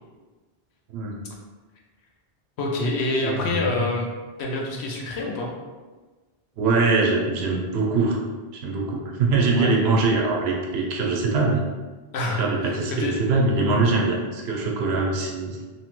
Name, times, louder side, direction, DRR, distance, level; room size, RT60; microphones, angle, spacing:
voice 1, 2.6-4.1 4.4-5.5 9.5-9.7 12.1-12.7 13.0-13.1, left 2 dB, 85° left, -1 dB, 0.9 m, -26 dB
voice 2, 3.2-3.8 6.6-8.2 8.5-11.6 12.4-15.6, right 3 dB, 85° right, 0 dB, 0.8 m, -23 dB
3.0 x 2.1 x 2.9 m, 1.3 s
omnidirectional pair, 1.1 m